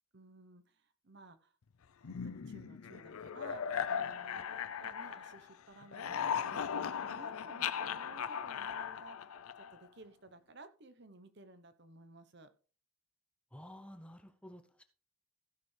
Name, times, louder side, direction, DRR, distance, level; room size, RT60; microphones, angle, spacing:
voice 1, 0.1-1.5 2.0-4.5 4.8-9.3 9.6-12.5, right 3 dB, 50° right, 10 dB, 1.0 m, -56 dB
sound 1, 2.0-5.5 5.8-9.9, left 7 dB, 85° left, 0.5 m, -38 dB
voice 2, 13.5-14.8, equal, 5° left, 7 dB, 0.8 m, -52 dB
15.5 x 6.7 x 3.3 m, 0.38 s
head